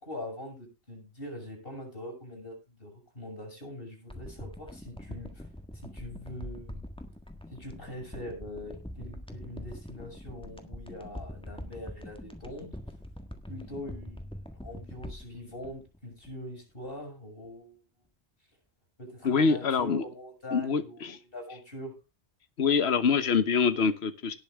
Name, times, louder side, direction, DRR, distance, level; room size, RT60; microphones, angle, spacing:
voice 1, 0.0-5.5 5.8-6.8 7.5-12.7 13.5-14.3 14.6-17.8 19.0-21.9, left 1 dB, 55° left, 2 dB, 6.4 m, -42 dB
sound 1, 4.1-16.6 16.8-16.9, equal, 5° left, 1.6 m, -44 dB
voice 2, 19.2-20.0 20.5-21.2 22.6-24.3, left 5 dB, 70° left, 12 dB, 1.4 m, -25 dB
18.5 x 6.8 x 3.5 m, 0.29 s
omnidirectional pair, 1.1 m